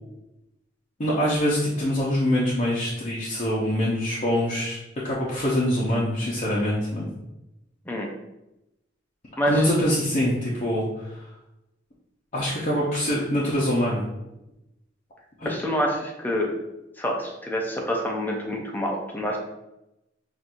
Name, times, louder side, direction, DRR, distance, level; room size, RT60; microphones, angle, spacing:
voice 1, 1.0-4.8 5.0-7.1 9.5-11.2 12.3-14.0 15.4-15.5, equal, 40° left, -7 dB, 0.8 m, -24 dB
voice 2, 9.4-9.7 15.4-16.5 17.0-19.4, equal, 10° left, 0 dB, 0.5 m, -27 dB
5.9 x 2.6 x 2.6 m, 0.92 s
head